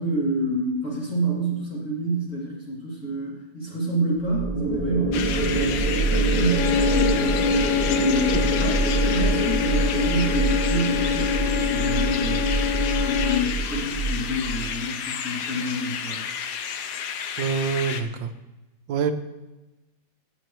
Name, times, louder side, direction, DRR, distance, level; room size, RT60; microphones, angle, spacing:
voice 1, 0.0-7.4 7.9-8.8 9.0-12.6 13.0-16.2, right 1 dB, 40° left, -6 dB, 3.1 m, -28 dB
sound 1, 4.2-14.7, right 2 dB, 5° right, 3.9 m, -25 dB
sound 2, 5.1-18.0, left 7 dB, 65° left, 1.3 m, -31 dB
sound 3, 6.5-13.7, left 11 dB, 90° left, 0.6 m, -27 dB
voice 2, 17.4-18.3 18.9-19.1, right 6 dB, 80° right, 9 dB, 1.5 m, -26 dB
17.0 x 7.9 x 3.1 m, 1.0 s
omnidirectional pair, 2.0 m